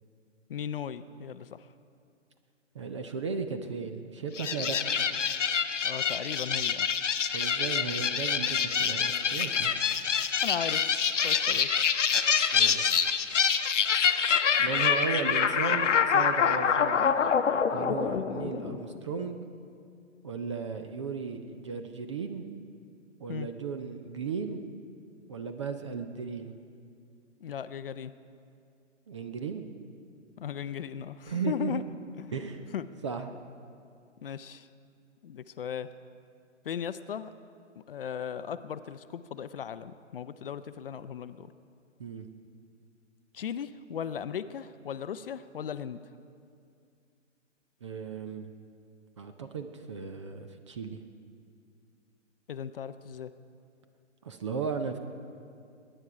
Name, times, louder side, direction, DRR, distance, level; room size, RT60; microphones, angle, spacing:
voice 1, 0.5-1.7 5.8-6.9 10.4-11.8 23.3-23.5 27.4-28.1 30.4-31.8 32.2-32.3 32.7-32.9 34.2-34.7 35.2-35.9 36.6-37.3 37.9-41.5 43.3-46.0 52.5-53.3, left 8 dB, 50° left, 13 dB, 0.5 m, -37 dB
voice 2, 2.7-4.8 7.3-9.7 12.5-13.1 14.6-17.0 17.7-19.4 20.2-22.4 23.2-24.6 25.3-26.5 29.1-29.6 31.3-31.9 32.3-32.7 33.0-33.3 42.0-42.3 47.8-48.5 49.2-51.0 54.2-55.0, right 5 dB, 25° right, 7 dB, 0.5 m, -35 dB
sound 1, 4.4-19.0, left 7 dB, 75° left, 0.9 m, -26 dB
20.5 x 10.0 x 4.9 m, 2.4 s
figure-of-eight pair, 140°, 37 cm